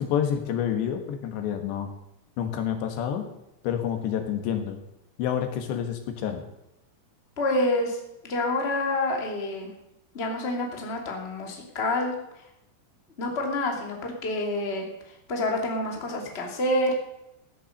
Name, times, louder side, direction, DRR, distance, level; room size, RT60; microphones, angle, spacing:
voice 1, 0.0-1.9 2.4-3.3 3.6-4.8 5.2-6.4, left 9 dB, 85° left, 6 dB, 3.9 m, -28 dB
voice 2, 7.4-8.0 8.2-9.7 10.1-12.1 13.2-14.9 15.3-16.9, left 1 dB, 20° left, 1 dB, 2.0 m, -27 dB
16.0 x 10.5 x 6.5 m, 0.85 s
omnidirectional pair, 4.9 m